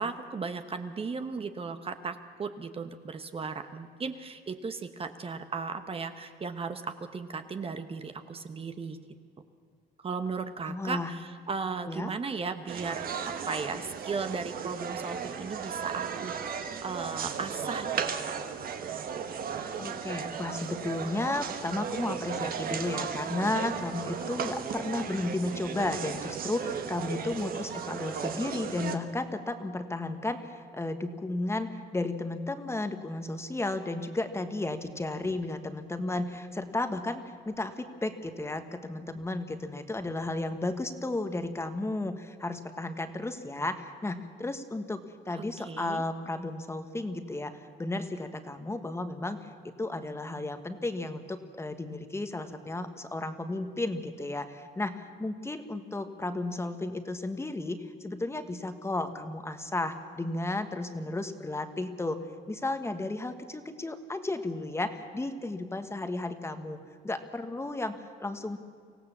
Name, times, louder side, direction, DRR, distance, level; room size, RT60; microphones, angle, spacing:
voice 1, 0.0-6.8 7.1-9.0 10.0-18.3 45.3-46.0, right 4 dB, 30° right, 8 dB, 1.1 m, -36 dB
voice 2, 10.5-11.1 11.9-12.1 19.8-62.2 62.5-66.8 67.0-68.6, left 2 dB, 15° left, 8 dB, 1.4 m, -33 dB
sound 1, 12.7-29.0, right 7 dB, 55° right, 1.5 m, -35 dB
24.5 x 16.5 x 7.3 m, 2.1 s
cardioid pair, 110°, 18 cm